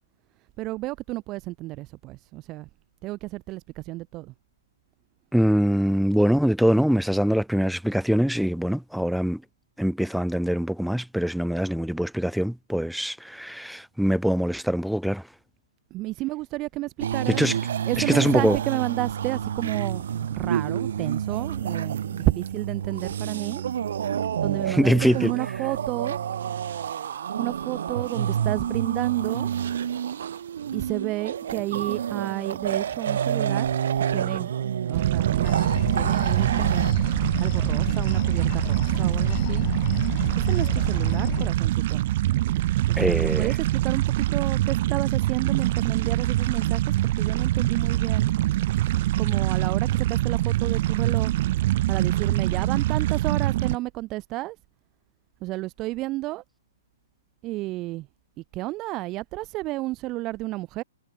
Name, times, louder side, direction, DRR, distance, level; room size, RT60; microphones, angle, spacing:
voice 1, 0.6-2.7 3.0-4.3 15.9-17.4 17.9-23.6 24.4-26.2 27.4-29.5 30.7-33.7 34.1-34.5 34.9-36.9 37.4-39.7 40.4-42.1 42.9-48.3 49.2-51.3 51.9-54.6 55.4-56.4 57.4-58.1 58.5-60.8, right 19 dB, 30° right, 2.0 m, -31 dB
voice 2, 5.3-9.4 9.8-15.2 17.3-17.5 18.0-18.6 24.7-25.3 43.0-43.5, equal, ahead, 0.3 m, -23 dB
sound 1, 17.0-36.9, right 9 dB, 70° right, 0.5 m, -29 dB
sound 2, 34.9-53.8, right 15 dB, 50° right, 0.9 m, -24 dB
sound 3, 35.4-41.5, left 26 dB, 40° left, 1.7 m, -33 dB
hypercardioid pair, 145°, 0 cm